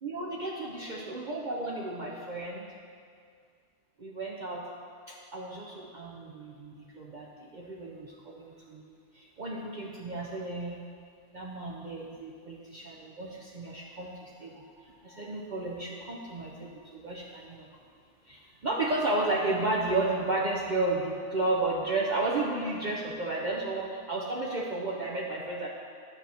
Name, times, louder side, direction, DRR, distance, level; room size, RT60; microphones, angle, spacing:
voice 1, 0.0-2.7 4.0-4.7 5.1-10.8 11.3-17.7 18.3-25.7, right 2 dB, 45° right, -3 dB, 0.7 m, -33 dB
10.5 x 3.5 x 6.8 m, 2.2 s
omnidirectional pair, 1.3 m